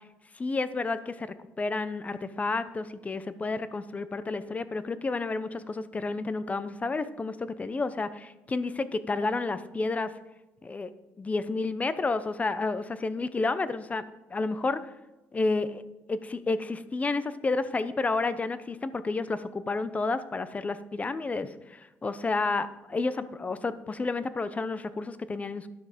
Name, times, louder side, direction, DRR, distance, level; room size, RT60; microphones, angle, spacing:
voice 1, 0.3-10.1 10.6-10.9 11.2-14.0 14.3-14.8 15.3-15.8 16.1-25.7, left 3 dB, 25° left, 14 dB, 0.7 m, -30 dB
11.0 x 6.3 x 5.0 m, 1.0 s
cardioid pair, 95°, 6 cm